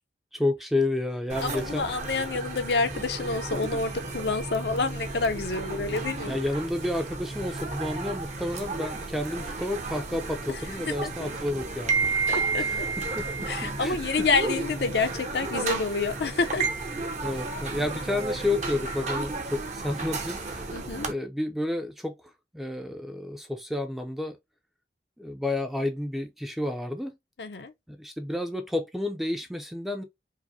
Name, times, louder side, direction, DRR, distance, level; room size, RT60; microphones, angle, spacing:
voice 1, 0.3-1.9 6.3-12.1 12.6-14.3 17.2-20.7 21.1-22.2 22.5-24.4 25.2-27.1 27.9-30.0, left 1 dB, ahead, 0.4 m, -31 dB
sound 1, 1.3-21.1, right 3 dB, 40° right, 0.7 m, -32 dB
voice 2, 1.4-6.4 10.5-10.6 10.9-11.1 12.3-12.9 13.5-16.7 20.7-21.1 27.4-27.7, left 4 dB, 70° left, 0.6 m, -28 dB
4.7 x 2.1 x 2.7 m
head